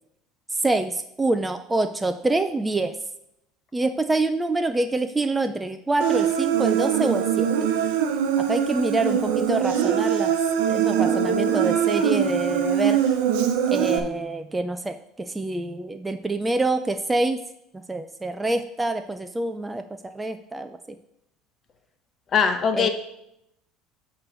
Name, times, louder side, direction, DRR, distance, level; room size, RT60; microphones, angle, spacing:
voice 1, 0.5-3.0 3.7-7.7 8.4-10.3 10.7-13.0 13.7-17.4 17.9-20.8 22.8-22.9, right 2 dB, 10° right, 8 dB, 0.4 m, -26 dB
Human voice, 6.0-14.0, right 8 dB, 85° right, 0.8 m, -22 dB
voice 2, 22.3-22.9, left 6 dB, 35° left, 7 dB, 0.9 m, -20 dB
8.7 x 3.1 x 6.3 m, 0.80 s
supercardioid pair, 115°, 0 cm